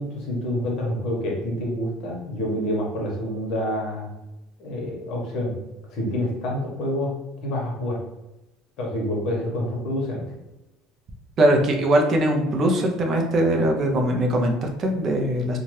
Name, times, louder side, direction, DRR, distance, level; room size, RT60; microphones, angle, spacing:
voice 1, 0.0-4.1 4.6-5.5 5.9-7.1 7.4-8.0 8.8-10.2, left 1 dB, 60° left, -2 dB, 1.1 m, -27 dB
voice 2, 11.4-15.6, right 1 dB, 40° right, 2 dB, 0.5 m, -21 dB
2.7 x 2.3 x 3.1 m, 0.96 s
cardioid pair, 130°, 0 cm